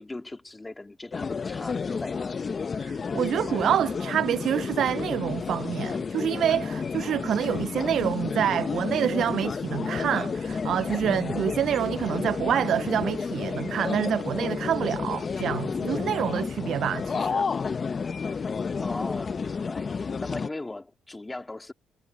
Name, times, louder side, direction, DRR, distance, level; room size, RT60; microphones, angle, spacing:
voice 1, 0.0-2.4 18.8-21.7, left 2 dB, 15° left, 2.9 m, -38 dB
sound 1, 1.1-20.5, left 5 dB, 40° left, 0.8 m, -31 dB
voice 2, 2.8-17.5, right 10 dB, 70° right, 0.3 m, -27 dB
cardioid pair, 90°, 0 cm